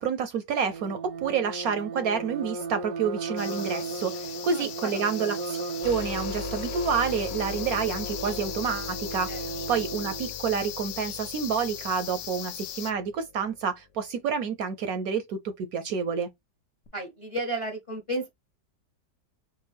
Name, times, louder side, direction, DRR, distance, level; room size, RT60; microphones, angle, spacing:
voice 1, 0.0-16.3, right 6 dB, 70° right, 0.9 m, -29 dB
sound 1, 0.7-10.3, right 4 dB, 90° right, 1.4 m, -36 dB
sound 2, 3.4-12.9, left 12 dB, 85° left, 1.2 m, -39 dB
voice 2, 4.5-5.0 9.3-9.4 16.9-18.3, right 1 dB, 30° left, 0.7 m, -33 dB
sound 3, 5.8-13.6 16.9-17.0, left 5 dB, 55° left, 0.8 m, -39 dB
4.6 x 2.4 x 3.4 m
omnidirectional pair, 1.8 m